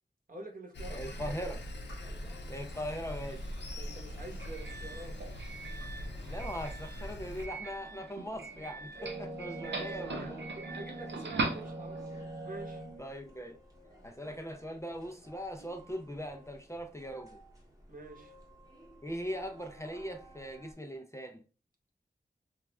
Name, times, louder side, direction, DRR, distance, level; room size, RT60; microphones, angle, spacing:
voice 1, 0.3-1.6 3.7-5.2 9.6-12.0 12.4-12.8 17.9-18.3, right 2 dB, 50° right, 0.9 m, -47 dB
Sawing, 0.7-7.5, left 1 dB, 85° left, 0.4 m, -42 dB
voice 2, 0.9-1.6 2.5-3.4 6.3-10.4 13.0-13.6 14.0-17.4 19.0-21.4, equal, 15° left, 0.4 m, -40 dB
sound 1, 1.8-20.7, right 2 dB, 20° right, 0.9 m, -48 dB
Doorbell, 3.2-12.2, right 3 dB, 90° right, 0.5 m, -41 dB
3.1 x 2.3 x 2.2 m
wide cardioid pair, 60°, 18 cm